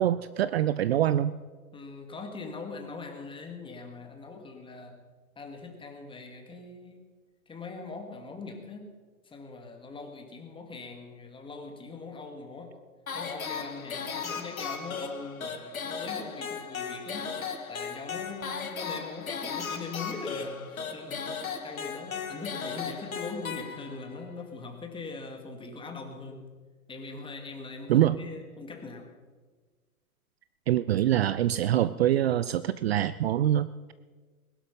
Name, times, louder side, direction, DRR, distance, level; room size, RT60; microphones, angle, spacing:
voice 1, 0.0-1.3 27.9-28.2 30.7-33.9, right 12 dB, 45° right, 16 dB, 0.5 m, -25 dB
voice 2, 1.7-4.9 5.4-7.0 7.5-8.9 9.2-12.8 13.1-17.4 17.7-21.3 21.6-26.5 26.9-29.1, left 4 dB, 10° left, 4 dB, 2.2 m, -41 dB
sound 1, 13.1-24.2, left 6 dB, 70° left, 1.8 m, -36 dB
21.0 x 11.5 x 5.5 m, 1.4 s
figure-of-eight pair, 105°, 43 cm